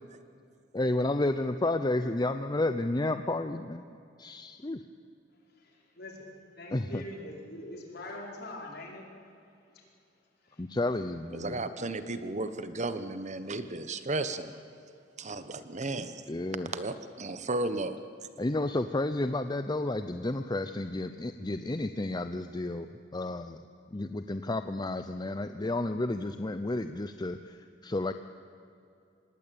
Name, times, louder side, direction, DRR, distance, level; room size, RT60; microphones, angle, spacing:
voice 1, 0.7-3.8 4.2-4.8 6.7-7.0 10.6-11.6 16.3-16.7 18.4-22.9 23.1-23.6 23.9-28.1, left 2 dB, 20° left, 9 dB, 0.6 m, -31 dB
voice 2, 5.5-9.1 9.7-9.9 10.4-10.6, left 1 dB, 60° left, 0 dB, 5.1 m, -44 dB
voice 3, 11.3-14.5 15.2-16.2 16.7-18.0, right 2 dB, 40° right, 11 dB, 1.1 m, -34 dB
26.0 x 20.0 x 8.6 m, 2.6 s
head